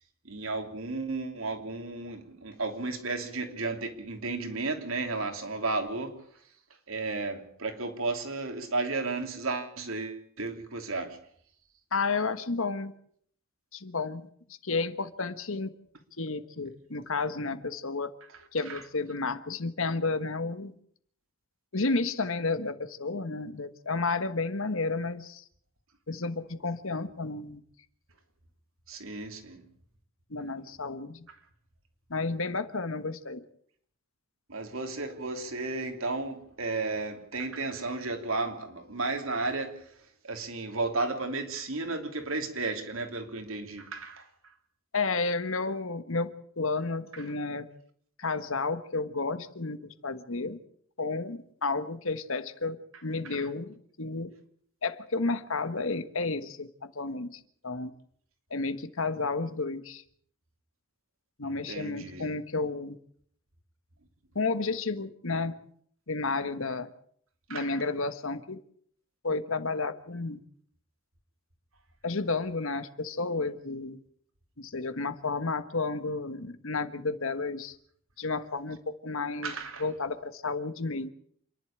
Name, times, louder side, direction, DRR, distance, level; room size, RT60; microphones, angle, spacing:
voice 1, 0.2-6.2 6.9-11.2 18.7-18.8 28.9-29.6 34.5-39.9 40.2-44.3 47.1-47.2 53.2-53.4 61.4-62.3 67.5-67.8 79.4-79.8, right 3 dB, 75° right, 3.0 m, -33 dB
voice 2, 11.9-12.9 13.7-14.2 14.6-15.7 16.2-18.1 18.5-20.7 21.7-25.4 26.1-27.6 30.3-31.3 32.1-33.4 44.9-47.7 48.2-50.6 51.0-54.3 54.8-57.9 58.5-60.0 61.4-63.0 64.3-65.5 66.1-66.9 67.5-68.6 69.2-70.4 72.0-74.0 74.6-77.8 78.2-79.5 79.8-81.1, left 3 dB, 70° left, 1.4 m, -32 dB
27.5 x 11.0 x 8.8 m
head